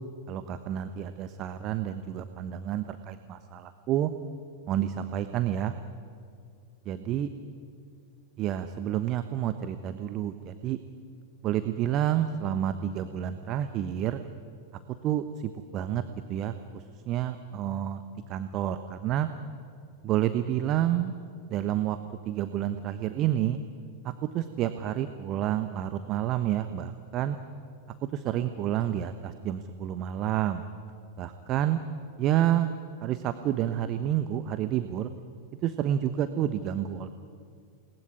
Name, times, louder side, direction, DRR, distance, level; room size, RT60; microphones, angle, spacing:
voice 1, 0.3-4.1 4.7-5.7 6.8-7.3 8.4-10.8 11.4-14.2 15.0-16.0 16.3-18.0 18.3-19.3 20.0-21.1 21.5-22.0 22.2-23.6 24.0-27.4 28.1-30.6 31.2-31.8 32.2-32.7 33.0-35.1 35.6-37.1, right 11 dB, 35° right, 10 dB, 1.2 m, -29 dB
28.0 x 20.0 x 9.9 m, 2.4 s
figure-of-eight pair, 90°, 0 cm